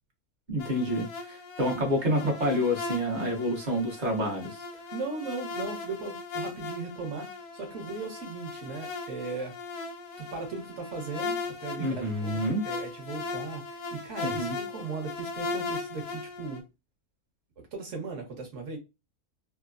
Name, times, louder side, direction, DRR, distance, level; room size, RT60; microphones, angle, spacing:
voice 1, 0.5-4.6 11.8-12.6 14.2-14.6, equal, 35° right, 0.9 m, -28 dB
sound 1, 0.6-16.6, left 3 dB, 85° left, 1.1 m, -38 dB
voice 2, 4.9-9.5 10.2-16.6 17.7-18.8, right 4 dB, 55° right, 1.2 m, -37 dB
3.2 x 2.1 x 2.4 m
omnidirectional pair, 1.6 m